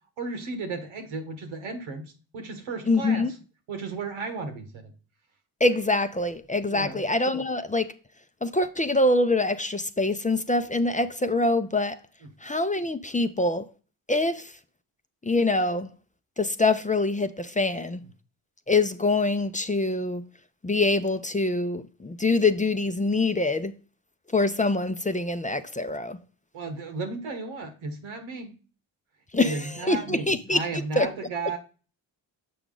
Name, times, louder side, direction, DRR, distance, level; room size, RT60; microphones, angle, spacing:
voice 1, 0.2-3.3 3.7-4.9 6.7-7.0 26.5-28.5 29.4-31.6, right 3 dB, 85° right, 1.4 m, -34 dB
voice 2, 2.9-3.3 5.6-7.9 8.4-12.0 12.4-13.7 14.1-14.5 15.2-15.9 16.4-18.0 18.7-20.2 20.6-23.7 24.3-26.2 29.3-30.6 31.0-31.1, left 2 dB, 15° left, 0.5 m, -24 dB
6.9 x 4.9 x 3.8 m
supercardioid pair, 50°, 47 cm